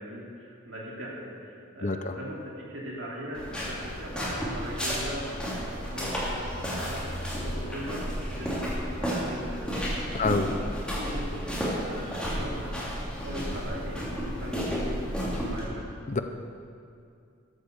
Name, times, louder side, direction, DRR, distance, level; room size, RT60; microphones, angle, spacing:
voice 1, 0.0-10.7 10.9-15.0 15.3-15.8, equal, 65° right, -4 dB, 3.0 m, -40 dB
voice 2, 1.8-2.1 10.1-10.5 16.1-16.2, left 3 dB, 35° left, 8 dB, 0.6 m, -26 dB
sound 1, 3.3-15.6, equal, 5° left, 3.0 m, -32 dB
13.5 x 8.3 x 6.9 m, 2.3 s
head